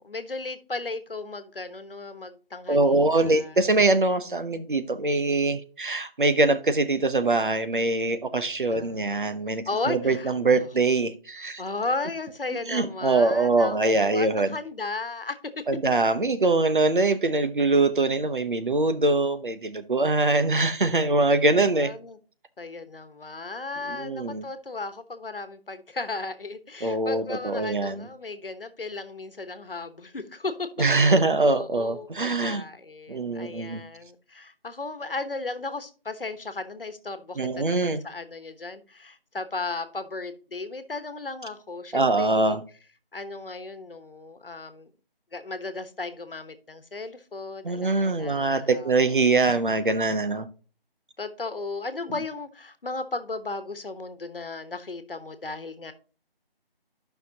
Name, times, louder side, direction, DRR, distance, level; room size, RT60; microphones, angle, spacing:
voice 1, 0.0-3.6 8.7-9.0 9.7-10.7 11.6-15.6 21.3-22.2 22.6-30.7 31.0-31.2 31.4-42.6 43.1-44.9 45.3-49.0 51.2-55.9, left 3 dB, 65° left, 1.2 m, -35 dB
voice 2, 2.7-11.6 12.7-14.5 15.7-21.9 23.9-24.4 26.8-28.1 30.8-32.7 33.1-33.8 37.4-38.0 41.9-42.6 47.6-50.5, right 2 dB, 55° right, 0.9 m, -23 dB
12.0 x 5.8 x 2.8 m
figure-of-eight pair, 175°, 30 cm